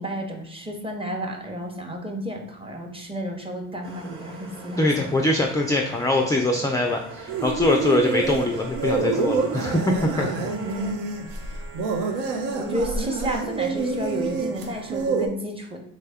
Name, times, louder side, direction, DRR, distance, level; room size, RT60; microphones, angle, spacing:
voice 1, 0.0-5.1 10.5-11.0 12.5-15.8, equal, 15° right, 2 dB, 0.8 m, -32 dB
sound 1, 3.8-10.9, right 2 dB, 40° right, 1.0 m, -41 dB
voice 2, 4.8-10.5, left 2 dB, 10° left, 2 dB, 0.3 m, -23 dB
sound 2, 7.3-15.3, right 4 dB, 80° right, 0.6 m, -27 dB
3.5 x 2.2 x 3.4 m, 0.66 s
supercardioid pair, 65°, 34 cm